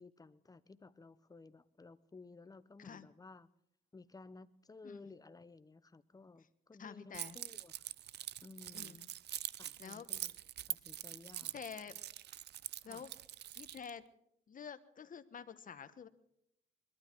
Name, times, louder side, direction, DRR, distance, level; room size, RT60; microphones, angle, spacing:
voice 1, 0.0-3.5 3.9-7.9 8.4-9.0 9.6-10.4 10.7-11.5 12.8-13.0, left 3 dB, 20° left, 15 dB, 0.8 m, -56 dB
voice 2, 6.8-7.4 8.7-9.1 9.8-10.1 11.4-12.0 12.8-13.1 13.5-14.0 14.5-16.1, left 7 dB, 45° left, 11 dB, 1.2 m, -48 dB
Keys jangling, 7.1-13.9, right 12 dB, 60° right, 0.5 m, -44 dB
21.5 x 12.5 x 4.6 m, 0.75 s
cardioid pair, 90°, 20 cm